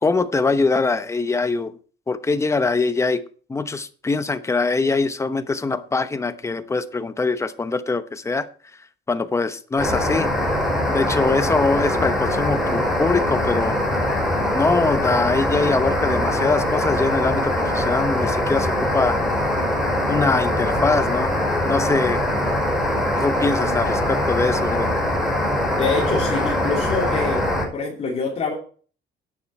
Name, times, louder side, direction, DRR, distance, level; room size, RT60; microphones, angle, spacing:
voice 1, 0.0-1.7 2.1-3.2 3.5-8.5 9.1-10.3 10.9-13.8 14.5-19.2 20.1-21.3 21.6-22.2 23.2-24.9, left 3 dB, 15° left, 0.9 m, -23 dB
sound 1, 9.8-27.6, left 1 dB, 5° right, 5.3 m, -22 dB
voice 2, 25.7-27.4 27.7-28.5, left 4 dB, 35° left, 2.9 m, -25 dB
11.5 x 9.9 x 4.4 m
cardioid pair, 155°, 19 cm